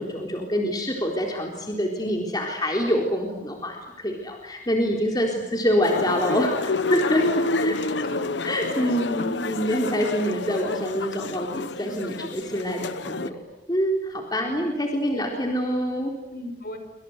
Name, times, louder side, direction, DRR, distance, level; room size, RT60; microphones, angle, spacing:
voice 1, 0.0-7.8 8.4-13.4 13.7-16.1, equal, 20° left, 1 dB, 3.9 m, -26 dB
sound 1, 5.8-13.3, left 3 dB, 70° left, 1.0 m, -29 dB
voice 2, 7.6-9.3 14.4-14.7 16.3-16.8, left 1 dB, 50° left, 7 dB, 5.6 m, -36 dB
28.0 x 26.0 x 8.2 m, 0.96 s
head